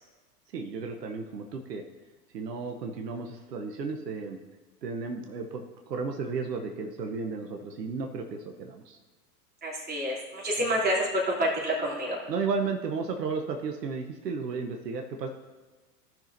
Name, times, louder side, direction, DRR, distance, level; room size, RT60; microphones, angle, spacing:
voice 1, 0.5-1.8 2.3-4.4 4.8-5.6 5.9-9.0 12.3-15.3, right 4 dB, 80° right, 3 dB, 1.0 m, -33 dB
voice 2, 9.6-12.2, equal, 20° right, -4 dB, 3.1 m, -28 dB
16.0 x 6.0 x 2.7 m, 1.3 s
hypercardioid pair, 95°, 48 cm